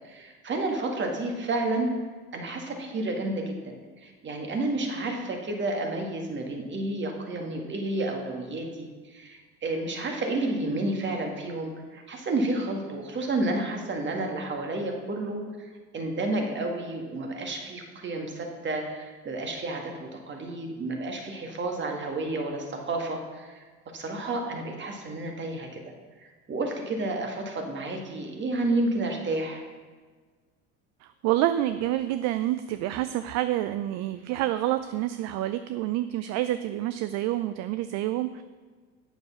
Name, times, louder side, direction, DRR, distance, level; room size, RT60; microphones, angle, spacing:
voice 1, 0.0-1.9 2.3-23.6 23.9-25.9 26.2-29.6, right 2 dB, 35° right, 2 dB, 1.9 m, -31 dB
voice 2, 31.0-38.4, right 14 dB, 55° right, 11 dB, 0.5 m, -28 dB
8.2 x 6.8 x 5.9 m, 1.4 s
hypercardioid pair, 75°, 33 cm